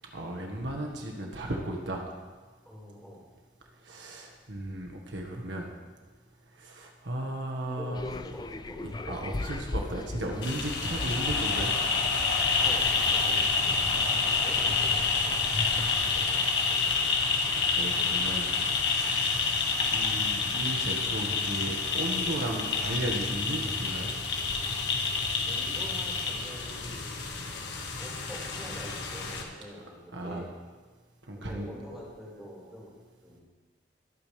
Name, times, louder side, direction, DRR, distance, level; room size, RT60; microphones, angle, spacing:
voice 1, 0.1-2.0 3.8-5.7 6.5-8.1 8.8-11.7 12.0-12.2 17.5-18.5 18.8-19.6 19.9-24.1 30.1-30.4 31.3-31.7, right 1 dB, 80° right, 1 dB, 1.7 m, -35 dB
voice 2, 2.6-3.2 7.7-9.2 12.6-15.9 16.1-17.1 25.5-27.1 28.0-30.6 31.3-32.9 33.2-33.4, equal, 5° right, -7 dB, 5.2 m, -46 dB
sound 1, 7.9-16.3, left 2 dB, 25° left, 0.4 m, -38 dB
sound 2, 10.4-29.4, left 4 dB, 70° left, 1.9 m, -28 dB
24.5 x 9.0 x 3.5 m, 1.4 s
head